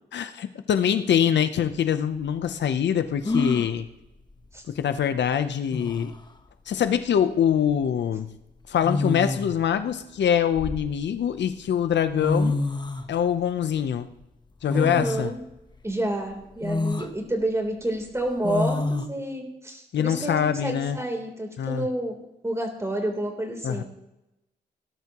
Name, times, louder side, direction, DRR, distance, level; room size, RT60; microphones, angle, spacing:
voice 1, 0.1-3.9 4.7-6.1 6.7-8.3 8.7-12.6 13.1-14.1 14.6-15.3 19.9-21.0 21.6-21.9 23.6-23.8, left 9 dB, 80° left, 10 dB, 0.8 m, -24 dB
sound 1, 1.6-1.7 3.2-3.7 5.3-5.4 5.7-6.2 7.5-7.7 8.8-9.6 10.2-11.3 11.9-12.0 12.2-13.1 14.7-15.3 15.8-15.9 16.6-17.1 18.4-19.1, left 2 dB, 25° left, 1.1 m, -27 dB
voice 2, 14.7-15.4 15.8-22.1 22.4-23.8, right 1 dB, 15° right, 2 dB, 3.5 m, -29 dB
18.0 x 12.0 x 3.0 m, 0.91 s
cardioid pair, 80°, 18 cm